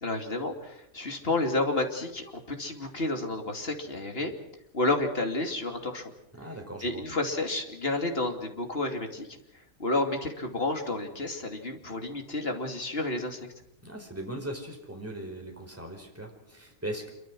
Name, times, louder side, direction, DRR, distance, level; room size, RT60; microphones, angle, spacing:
voice 1, 0.0-4.3 4.7-6.1 6.8-9.3 9.8-13.4, left 2 dB, 40° left, 4 dB, 3.1 m, -30 dB
voice 2, 6.4-7.0 13.8-17.1, right 1 dB, 10° right, 2 dB, 4.8 m, -39 dB
27.0 x 24.0 x 6.3 m, 0.77 s
omnidirectional pair, 1.5 m